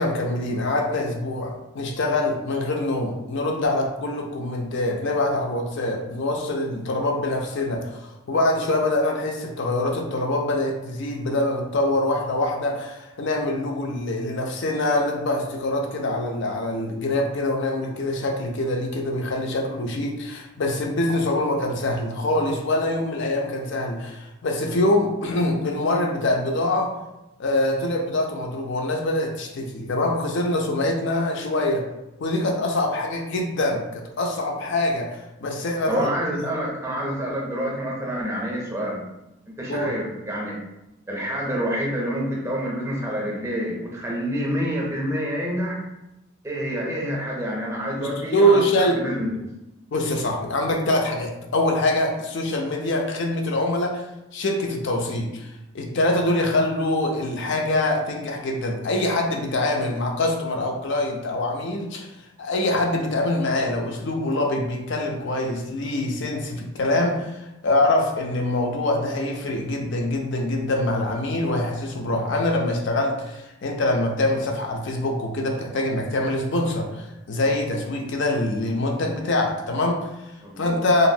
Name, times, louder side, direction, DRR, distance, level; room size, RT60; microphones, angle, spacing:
voice 1, 0.0-26.9 27.4-31.8 32.2-36.1 36.4-36.5 39.7-39.9 48.0-49.0 49.9-54.0 54.3-62.1 62.4-80.3 80.6-81.1, left 1 dB, 55° left, 2 dB, 0.5 m, -24 dB
voice 2, 35.9-39.0 39.6-40.6 41.1-45.8 46.4-49.3 80.4-80.8, equal, 15° right, -3 dB, 0.6 m, -27 dB
2.9 x 2.5 x 2.6 m, 0.94 s
head